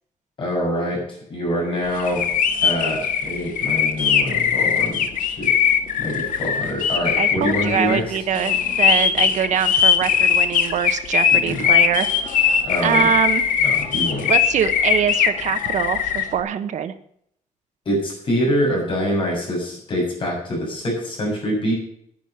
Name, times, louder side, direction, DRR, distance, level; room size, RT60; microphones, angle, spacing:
voice 1, 0.4-1.0 1.3-2.2 2.6-5.0 5.4-5.5 6.0-8.1 11.4-11.7 12.6-13.1 13.6-14.3 17.9-21.7, equal, 40° left, -2 dB, 6.9 m, -25 dB
sound 1, 2.0-16.3, left 8 dB, 90° left, 1.6 m, -20 dB
voice 2, 7.2-12.3 12.8-13.5 14.3-16.9, right 8 dB, 65° right, 10 dB, 1.2 m, -23 dB
10.5 x 10.0 x 6.5 m, 0.68 s
wide cardioid pair, 180°, 14 cm